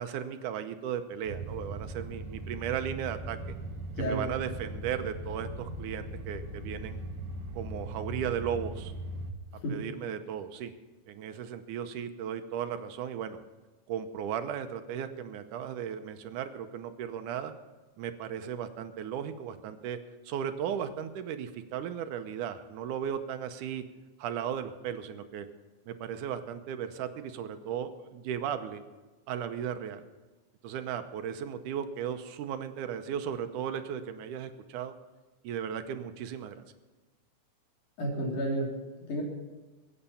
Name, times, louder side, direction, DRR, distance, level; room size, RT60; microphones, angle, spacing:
voice 1, 0.0-3.4 4.0-7.0 7.5-8.9 9.7-10.7 11.1-13.4 13.9-17.5 18.0-20.0 20.3-23.8 24.2-25.5 25.9-28.8 29.3-30.0 30.6-34.9 35.4-36.6, right 8 dB, 80° right, 9 dB, 2.3 m, -36 dB
sound 1, 1.2-9.3, right 1 dB, 55° right, 1.3 m, -39 dB
voice 2, 4.0-4.3 9.5-9.9 38.0-39.2, right 1 dB, 70° left, -1 dB, 4.7 m, -32 dB
22.5 x 8.8 x 5.7 m, 1.2 s
omnidirectional pair, 3.7 m